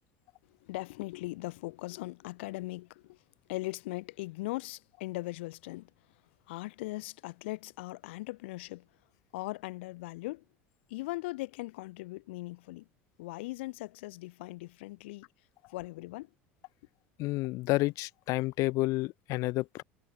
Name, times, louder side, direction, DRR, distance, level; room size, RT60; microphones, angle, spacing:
voice 1, 0.5-3.2 3.5-5.9 6.5-8.9 9.3-10.4 10.9-12.9 13.2-15.3 15.7-16.3, left 20 dB, 75° left, 2.7 m, -39 dB
voice 2, 17.2-19.8, left 20 dB, 60° left, 0.8 m, -30 dB
hypercardioid pair, 90°, 6 cm